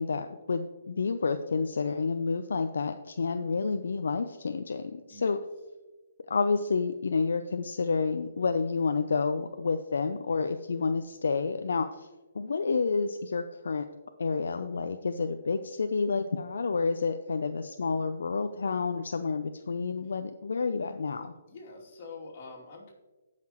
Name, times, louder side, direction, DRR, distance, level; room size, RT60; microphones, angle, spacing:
voice 1, 0.0-5.4 6.3-12.1 12.3-13.9 14.2-21.3, left 4 dB, 75° left, 8 dB, 0.5 m, -29 dB
voice 2, 21.5-22.9, left 3 dB, 45° left, -3 dB, 2.7 m, -45 dB
16.5 x 5.8 x 3.0 m, 1.2 s
hypercardioid pair, 155°, 0 cm